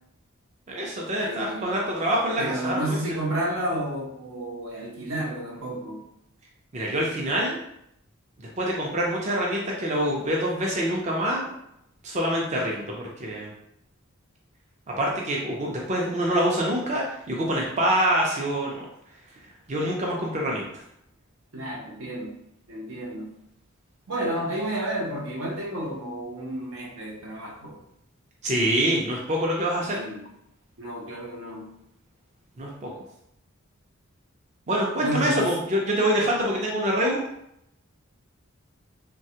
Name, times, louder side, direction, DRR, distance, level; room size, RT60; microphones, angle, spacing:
voice 1, 0.7-3.2 6.7-7.6 8.4-11.5 12.0-13.5 14.9-18.9 19.7-20.7 28.4-30.0 32.6-32.9 34.7-37.2, right 1 dB, 35° right, -2 dB, 0.5 m, -25 dB
voice 2, 1.2-1.8 2.4-6.1 12.6-12.7 21.5-22.4 22.7-23.3 24.1-27.8 29.8-30.3 30.8-31.7 35.0-35.5, right 1 dB, 80° right, -2 dB, 0.8 m, -31 dB
3.1 x 2.2 x 2.7 m, 0.78 s
head